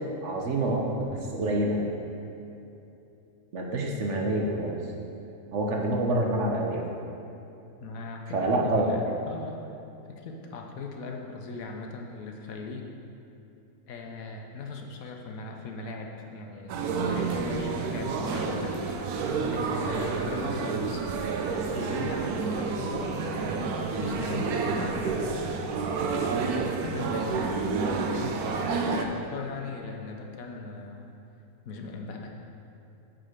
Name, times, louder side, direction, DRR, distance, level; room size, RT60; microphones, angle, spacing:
voice 1, 0.0-1.9 3.5-4.8 5.5-6.8 8.3-9.1, right 1 dB, 60° right, 0 dB, 1.0 m, -27 dB
voice 2, 7.8-9.0 9.3-9.7 10.1-12.9 13.9-16.8 17.0-19.1 19.5-21.0 21.7-25.5 26.8-27.5 28.2-31.1 31.6-32.3, left 3 dB, 70° left, 2 dB, 1.1 m, -39 dB
sound 1, 16.7-29.1, right 4 dB, 80° right, 1.1 m, -29 dB
8.0 x 3.8 x 6.5 m, 2.9 s
omnidirectional pair, 1.6 m